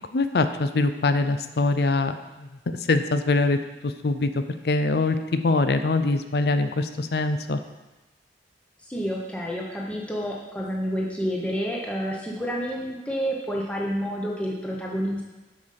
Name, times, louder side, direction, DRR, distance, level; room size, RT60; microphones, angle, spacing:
voice 1, 0.1-2.5 2.8-7.6, left 3 dB, 60° left, 10 dB, 0.5 m, -23 dB
voice 2, 8.9-15.2, equal, 5° left, -3 dB, 1.0 m, -29 dB
7.8 x 5.0 x 5.7 m, 1.1 s
head